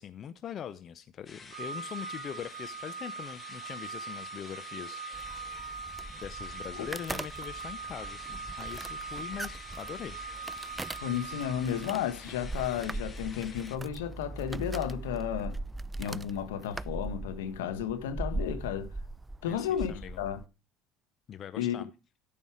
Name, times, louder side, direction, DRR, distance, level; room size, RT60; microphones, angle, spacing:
voice 1, 0.0-5.0 6.1-10.2 19.5-20.2 21.3-21.9, left 9 dB, 50° left, 0.8 m, -42 dB
sound 1, 1.3-13.8, left 4 dB, 30° left, 1.7 m, -49 dB
Organ, 1.5-12.3, right 5 dB, 90° right, 1.1 m, -42 dB
sound 2, 5.1-20.5, right 2 dB, 15° right, 0.4 m, -40 dB
voice 2, 11.0-15.5 16.0-18.9 19.4-20.4 21.6-21.8, left 9 dB, 85° left, 1.4 m, -33 dB
13.0 x 5.5 x 4.9 m
hypercardioid pair, 75°, 0 cm